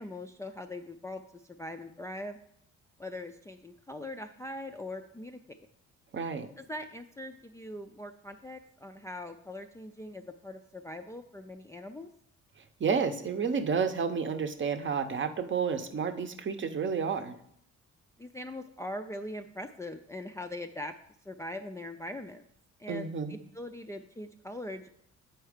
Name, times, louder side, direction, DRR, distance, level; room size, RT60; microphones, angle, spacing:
voice 1, 0.0-2.4 3.0-5.6 6.6-12.1 18.2-20.9 21.3-22.4 22.8-23.1 23.5-24.9, left 1 dB, 10° left, 4 dB, 0.4 m, -41 dB
voice 2, 6.1-6.5 12.8-17.4 22.9-23.4, right 6 dB, 40° right, 8 dB, 0.7 m, -30 dB
8.0 x 4.5 x 5.0 m, 0.71 s
cardioid pair, 90°, 30 cm